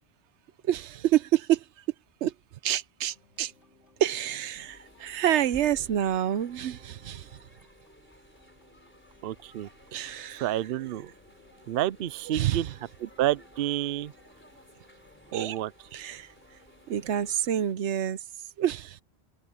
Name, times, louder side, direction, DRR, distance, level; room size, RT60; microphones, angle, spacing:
voice 1, 0.7-1.6 2.2-2.3 2.6-3.5 4.0-7.3 9.9-10.5 12.3-12.7 15.3-15.6 15.9-16.3 16.9-18.2 18.6-19.0, right 11 dB, 90° right, 1.0 m, -27 dB
sound 1, 3.1-17.4, left 1 dB, 75° left, 4.4 m, -61 dB
sound 2, 4.5-17.7, equal, 10° left, 3.9 m, -55 dB
voice 2, 9.2-9.7 10.3-11.1 11.7-12.7 13.0-14.1 15.3-15.7, right 13 dB, 65° right, 0.7 m, -29 dB
open air
omnidirectional pair, 1.2 m